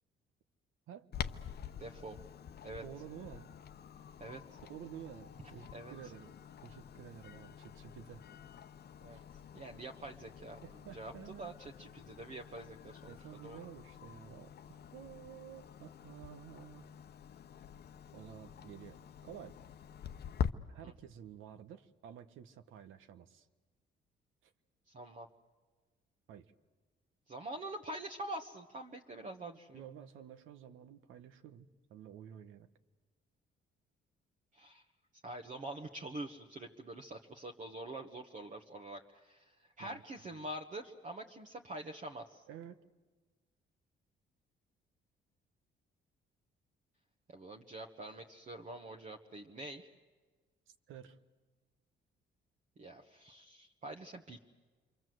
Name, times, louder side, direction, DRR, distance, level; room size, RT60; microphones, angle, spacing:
Clock, 1.1-20.5, left 8 dB, 55° left, 0.8 m, -46 dB
voice 1, 1.8-2.2 2.6-2.8 4.2-4.4 5.7-5.9 9.0-9.2 9.5-10.6 10.9-13.2 13.4-13.6 20.8-20.9 24.9-25.3 27.3-29.8 34.5-34.8 35.2-39.5 39.8-42.4 47.3-49.9 52.8-54.4, right 2 dB, 40° right, 1 dB, 1.3 m, -45 dB
voice 2, 2.8-3.5 4.6-6.3 6.6-8.2 9.1-9.2 10.6-11.6 13.1-16.9 18.1-19.6 20.7-23.5 24.4-24.5 26.3-26.5 29.7-32.7 39.8-40.0 42.5-42.8 50.9-51.2, right 10 dB, 85° right, 9 dB, 1.2 m, -51 dB
28.0 x 23.5 x 7.8 m, 1.4 s
cardioid pair, 90°, 20 cm